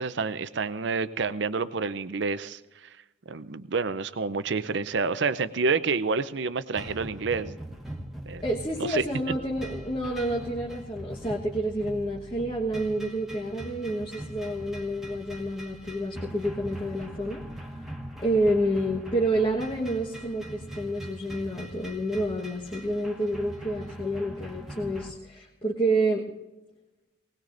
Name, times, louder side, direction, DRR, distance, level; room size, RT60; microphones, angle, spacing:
voice 1, 0.0-2.6 3.3-7.6 8.3-8.4 8.8-9.0, right 4 dB, 65° right, 14 dB, 0.6 m, -28 dB
sound 1, 6.8-25.1, right 1 dB, ahead, 1.5 m, -41 dB
voice 2, 8.4-17.4 18.2-26.3, right 1 dB, 25° left, -3 dB, 1.2 m, -29 dB
20.0 x 19.0 x 2.6 m, 1.1 s
head